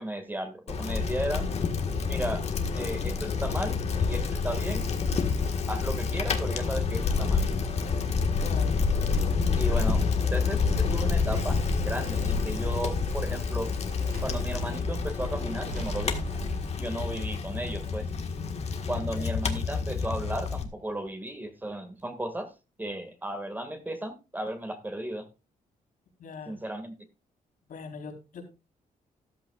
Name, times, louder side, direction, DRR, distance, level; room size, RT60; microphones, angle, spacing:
voice 1, 0.0-1.5 2.1-2.5 2.8-4.9 5.7-7.5 9.3-13.7 14.2-16.2 16.8-18.1 18.9-22.5 22.8-25.3 26.5-26.9, right 1 dB, 15° right, 7 dB, 2.0 m, -35 dB
Bicycle, 0.7-20.6, left 5 dB, 50° left, 1.6 m, -28 dB
sound 1, 5.8-21.3 21.6-21.7, right 2 dB, 80° right, 4.2 m, -43 dB
voice 2, 8.4-8.8 18.9-19.4 26.2-26.5 27.7-28.5, left 5 dB, 75° left, 1 dB, 4.0 m, -41 dB
13.5 x 12.0 x 2.4 m, 0.28 s
cardioid pair, 120°, 14 cm